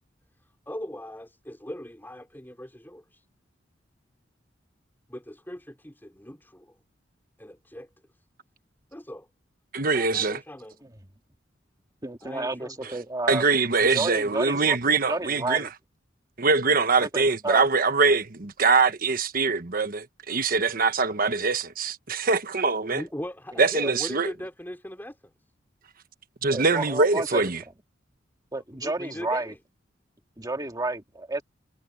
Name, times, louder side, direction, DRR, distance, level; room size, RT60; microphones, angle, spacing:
voice 1, 0.7-3.2 5.1-6.7 7.4-7.9 8.9-9.3 9.9-10.9 12.2-13.0 22.9-25.2 28.7-29.6, equal, 10° left, 4.6 m, -39 dB
voice 2, 9.7-10.4 13.3-15.7 16.4-23.0 23.6-24.3 26.4-27.6, right 4 dB, 50° right, 1.2 m, -23 dB
voice 3, 12.0-13.4 13.9-14.8 15.1-15.7 17.0-17.6 23.8-24.0 26.5-27.4 28.5-29.5 30.4-31.4, right 2 dB, 20° right, 2.0 m, -31 dB
head